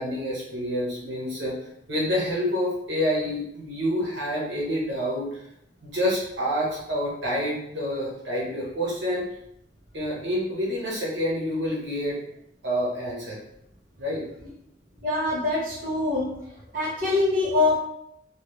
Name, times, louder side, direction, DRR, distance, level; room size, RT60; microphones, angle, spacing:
voice 1, 0.0-1.6 1.9-5.4 5.8-9.2 9.9-12.2 12.6-13.4 14.0-14.2, equal, 90° right, -5 dB, 1.2 m, -28 dB
voice 2, 15.0-16.3 16.7-17.8, left 2 dB, 45° right, -6 dB, 1.0 m, -24 dB
3.2 x 2.5 x 3.2 m, 0.76 s
head